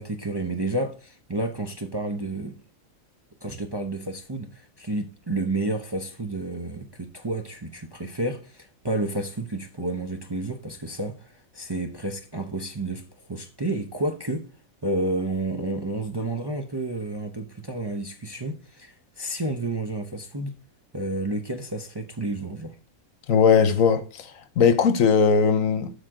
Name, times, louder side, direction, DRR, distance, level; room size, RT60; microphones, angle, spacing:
voice 1, 0.0-2.6 3.4-14.5 14.8-20.6 20.9-22.8, right 2 dB, 25° right, 0.7 m, -30 dB
voice 2, 23.3-25.9, left 6 dB, 70° left, 1.3 m, -19 dB
12.5 x 4.9 x 3.7 m
omnidirectional pair, 1.5 m